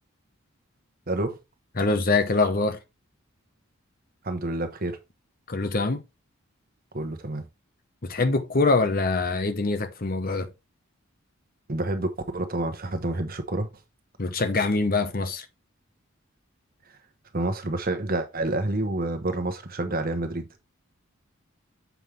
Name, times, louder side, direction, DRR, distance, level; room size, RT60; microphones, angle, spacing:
voice 1, 1.1-1.4 4.2-5.0 6.9-7.5 11.7-13.7 17.3-20.5, right 2 dB, 45° right, 1.1 m, -28 dB
voice 2, 1.8-2.8 5.5-6.0 8.0-10.5 14.2-15.4, left 3 dB, 45° left, 0.9 m, -24 dB
7.2 x 5.5 x 3.2 m
head